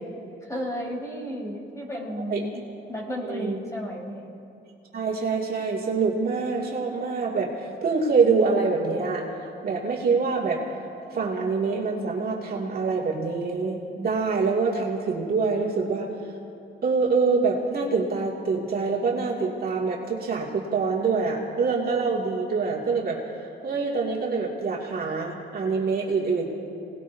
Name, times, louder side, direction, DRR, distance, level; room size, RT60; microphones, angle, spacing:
voice 1, 0.4-2.6 2.9-4.3, equal, 15° left, -4 dB, 4.9 m, -33 dB
voice 2, 3.2-3.6 4.9-9.3 9.6-10.6 11.1-16.1 16.8-23.2 23.6-26.4, right 4 dB, 50° right, -3 dB, 2.4 m, -25 dB
26.0 x 19.0 x 2.8 m, 2.7 s
cardioid pair, 90°, 20 cm